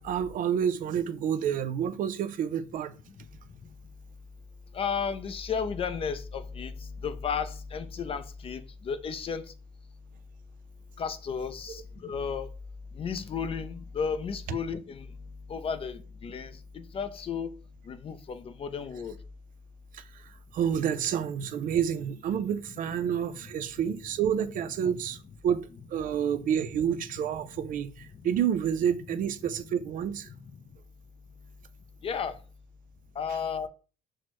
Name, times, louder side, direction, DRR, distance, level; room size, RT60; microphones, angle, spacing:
voice 1, 0.0-2.9 11.7-11.8 14.5-14.6 19.9-20.0 20.5-25.2 25.4-30.3, right 8 dB, 55° right, 0.4 m, -29 dB
voice 2, 4.7-6.7 7.0-9.4 11.0-12.5 13.0-15.0 15.5-17.5 17.9-19.1 32.0-32.4 33.2-33.7, left 6 dB, 35° left, 0.4 m, -33 dB
5.9 x 2.1 x 3.0 m
cardioid pair, 110°, 17 cm